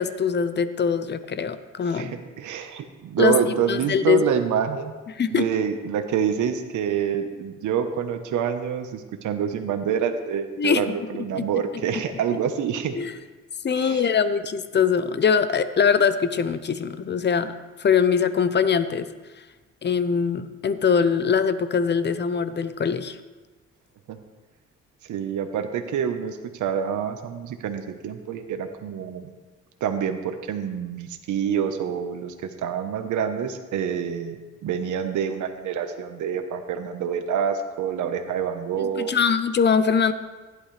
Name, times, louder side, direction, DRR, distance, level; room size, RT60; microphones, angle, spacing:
voice 1, 0.0-2.2 3.2-3.3 3.7-4.2 5.2-5.5 10.6-10.8 11.3-11.4 13.0-13.1 13.6-17.5 17.8-19.1 19.8-23.2 39.0-40.1, left 6 dB, 35° left, 12 dB, 0.8 m, -22 dB
voice 2, 1.9-5.0 5.3-12.9 13.7-14.1 24.1-24.2 25.0-29.3 29.8-39.1, right 8 dB, 75° right, 7 dB, 1.2 m, -27 dB
15.5 x 11.5 x 3.4 m, 1.3 s
cardioid pair, 90°, 30 cm